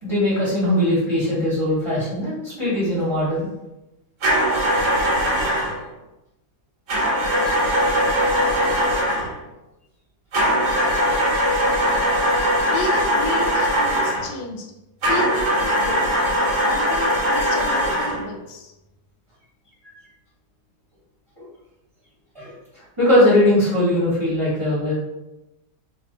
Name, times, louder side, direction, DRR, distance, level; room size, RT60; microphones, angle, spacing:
voice 1, 0.0-3.5 15.8-15.9 19.8-19.9 22.3-24.9, left 1 dB, 20° right, -10 dB, 0.8 m, -20 dB
sound 1, 4.2-5.8 6.9-9.3 10.3-14.3 15.0-18.3, equal, 55° right, 0.9 m, -20 dB
voice 2, 12.7-14.7 15.1-16.1 16.5-18.7, left 3 dB, 70° left, 2 dB, 1.1 m, -31 dB
3.1 x 2.3 x 3.7 m, 0.97 s
omnidirectional pair, 2.2 m